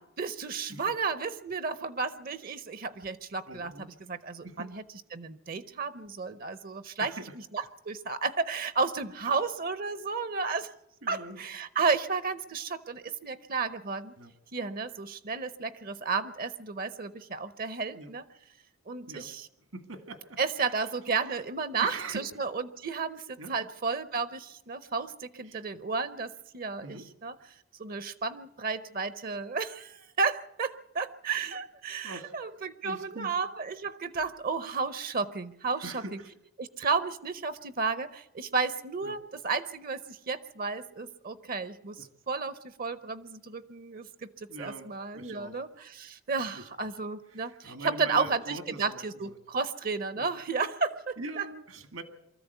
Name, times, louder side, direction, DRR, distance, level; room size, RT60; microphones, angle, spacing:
voice 1, 0.0-4.8 5.1-7.1 7.5-10.7 11.1-14.1 14.5-18.2 18.9-19.5 20.4-27.3 27.8-36.0 36.6-44.3 44.6-51.5, right 4 dB, 45° right, 14 dB, 0.7 m, -33 dB
voice 2, 3.5-3.9 4.4-4.7 7.0-7.3 11.0-11.4 14.2-14.3 17.9-18.1 19.1-19.3 19.7-20.4 20.7-20.8 21.8-22.3 23.4-23.7 25.5-25.6 26.8-27.1 32.0-32.3 32.8-33.4 35.8-36.3 39.0-39.2 42.0-42.1 44.5-45.6 46.5-46.7 47.3-49.3 50.2-50.3 51.2-52.0, right 2 dB, 75° right, 8 dB, 2.1 m, -42 dB
24.0 x 14.0 x 8.1 m, 0.81 s
head